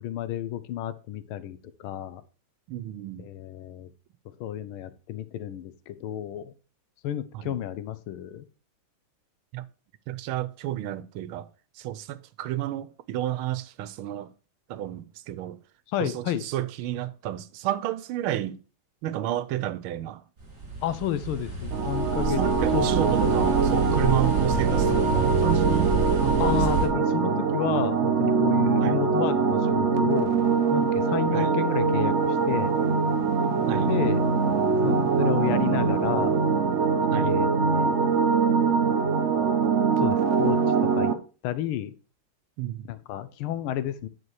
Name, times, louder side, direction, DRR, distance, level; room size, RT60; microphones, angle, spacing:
voice 1, 0.0-2.2 3.2-3.9 4.4-6.5 7.0-8.5 15.9-16.4 20.8-22.4 22.7-23.4 26.4-30.3 30.7-32.7 33.8-34.3 34.8-36.4 37.2-38.0 40.0-41.1 41.4-41.9 42.9-44.1, left 11 dB, 85° left, 1.6 m, -31 dB
voice 2, 2.7-3.3 7.3-7.6 9.5-9.6 10.1-11.5 11.8-14.3 14.7-15.6 16.0-18.6 19.0-20.2 22.3-25.9 26.2-26.8 28.8-29.0 31.3-31.5 33.4-33.9 37.1-37.4 42.6-42.9, right 13 dB, 90° right, 1.5 m, -31 dB
sound 1, 20.4-26.9, right 3 dB, 40° right, 3.4 m, -28 dB
sound 2, 21.7-41.1, right 5 dB, 55° right, 0.8 m, -23 dB
9.8 x 4.7 x 4.7 m
omnidirectional pair, 2.3 m